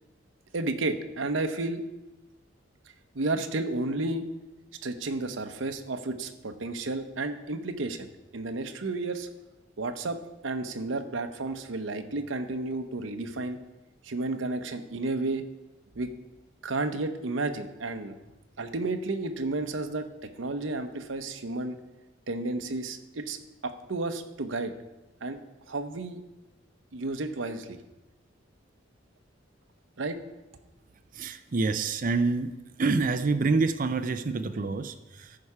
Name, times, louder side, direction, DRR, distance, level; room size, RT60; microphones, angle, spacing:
voice 1, 0.5-1.8 3.1-4.2 4.8-8.1 8.3-9.3 9.8-13.6 14.0-15.4 16.0-16.1 16.6-18.1 18.6-21.8 22.3-23.4 23.6-24.7 25.2-25.4 25.7-26.2 26.9-27.8 30.0-30.2, right 2 dB, 80° right, 7 dB, 0.8 m, -32 dB
voice 2, 31.1-32.5 32.8-35.4, right 3 dB, 45° right, 9 dB, 0.5 m, -27 dB
14.0 x 4.8 x 5.6 m, 1.0 s
head